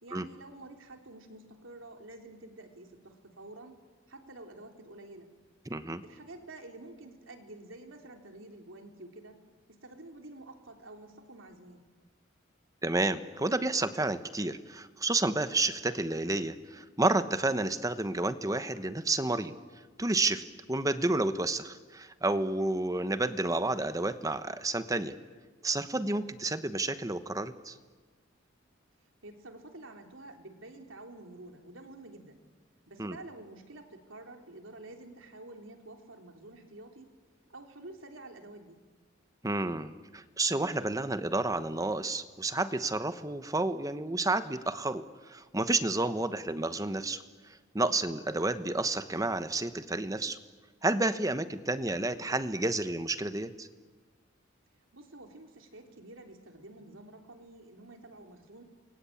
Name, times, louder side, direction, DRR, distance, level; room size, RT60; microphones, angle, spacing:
voice 1, 0.0-3.8 4.1-5.3 6.0-9.4 9.7-11.8 22.6-22.9 29.2-32.4 32.9-37.1 37.5-38.8 54.9-58.6, right 2 dB, 80° right, 4 dB, 3.4 m, -49 dB
voice 2, 5.7-6.0 12.8-19.5 20.0-25.2 25.6-27.8 33.0-33.2 39.4-50.4 50.8-53.7, right 2 dB, 15° right, 11 dB, 1.0 m, -30 dB
29.0 x 23.0 x 8.7 m, 1.4 s
head